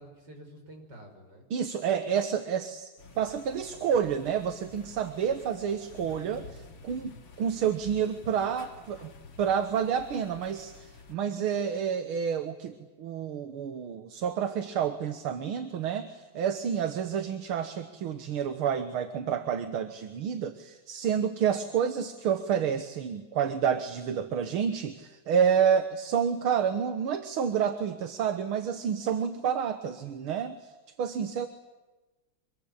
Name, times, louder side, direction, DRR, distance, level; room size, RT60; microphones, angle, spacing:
voice 1, 0.0-1.5, right 1 dB, 50° right, 3 dB, 6.6 m, -49 dB
voice 2, 1.5-9.1 9.4-30.7 31.0-31.5, right 7 dB, 75° right, 9 dB, 2.2 m, -29 dB
sound 1, 3.0-11.2, left 4 dB, 65° left, 3.1 m, -50 dB
25.5 x 22.5 x 10.0 m, 1.1 s
omnidirectional pair, 2.4 m